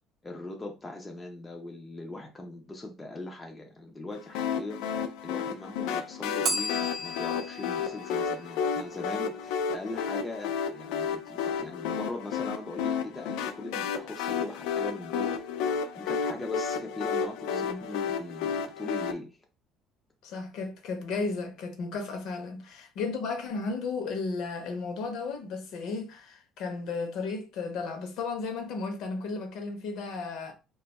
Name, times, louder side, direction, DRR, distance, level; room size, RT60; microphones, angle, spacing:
voice 1, 0.2-15.4 15.9-19.4, left 2 dB, 10° left, 0.4 m, -40 dB
sound 1, 4.3-19.1, left 6 dB, 90° left, 0.4 m, -32 dB
Bell, 6.4-9.3, right 1 dB, 45° right, 0.6 m, -35 dB
voice 2, 17.5-17.8 20.2-30.5, left 4 dB, 55° left, 0.7 m, -34 dB
2.6 x 2.3 x 3.9 m
cardioid pair, 170°, 0 cm